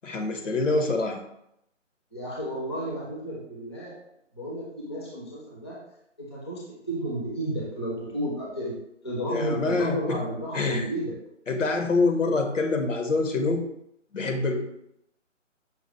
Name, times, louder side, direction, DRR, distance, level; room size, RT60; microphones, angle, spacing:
voice 1, 0.0-1.2 9.3-10.2 10.5-10.9 11.5-13.6 14.1-14.6, left 3 dB, 75° left, 4 dB, 1.0 m, -25 dB
voice 2, 2.1-4.0 4.3-5.8 6.2-8.8 9.0-11.1, right 1 dB, 20° left, -5 dB, 0.5 m, -32 dB
5.8 x 2.1 x 4.2 m, 0.79 s
figure-of-eight pair, 160°, 38 cm